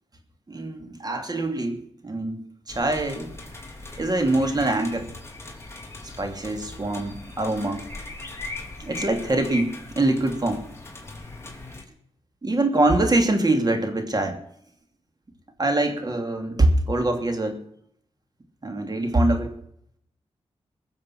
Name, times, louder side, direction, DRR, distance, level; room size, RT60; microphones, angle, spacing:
voice 1, 0.5-1.8 2.0-2.4 2.7-3.3 4.0-5.1 6.2-7.9 8.8-10.6 12.4-14.4 15.6-17.6 18.6-19.5, right 2 dB, 35° right, 5 dB, 2.9 m, -24 dB
sound 1, 2.7-11.8, left 2 dB, 25° left, 3.3 m, -39 dB
21.5 x 7.3 x 6.2 m, 0.69 s
wide cardioid pair, 80°, 11 cm